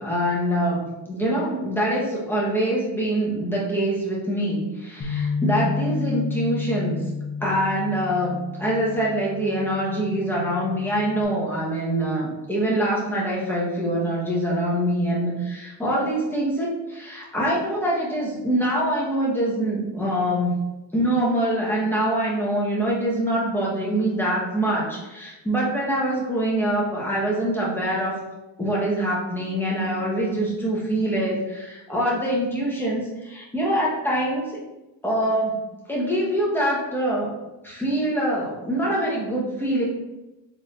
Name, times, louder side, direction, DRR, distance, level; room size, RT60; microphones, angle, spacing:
voice 1, 0.0-7.0 7.4-20.6 20.9-28.2 28.6-34.6 35.0-35.6 35.9-37.3 37.6-39.8, right 1 dB, 5° left, -6 dB, 1.3 m, -24 dB
Bass guitar, 5.0-11.3, left 5 dB, 20° left, 0.9 m, -31 dB
3.9 x 3.5 x 2.6 m, 1.0 s
cardioid pair, 80°, 48 cm